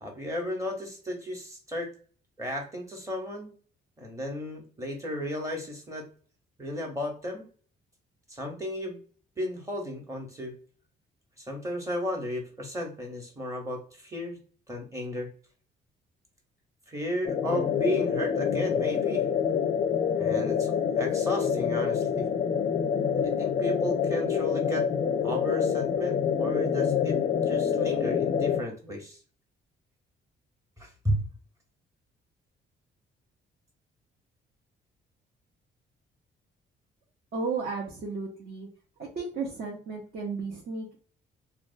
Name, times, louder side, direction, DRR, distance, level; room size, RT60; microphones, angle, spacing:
voice 1, 0.0-1.9 2.4-3.5 4.0-6.1 6.6-7.5 8.3-9.0 9.4-10.5 11.4-14.4 14.7-15.3 16.9-19.3 20.1-22.2 23.2-24.9 25.2-27.2 27.4-29.2 30.8-31.2, left 1 dB, 15° right, 1 dB, 1.0 m, -34 dB
sound 1, 17.2-28.6, left 7 dB, 35° left, 0.4 m, -26 dB
voice 2, 37.3-38.7 39.0-41.0, right 4 dB, 50° right, -2 dB, 0.9 m, -34 dB
2.8 x 2.2 x 2.6 m, 0.42 s
cardioid pair, 90°, 20 cm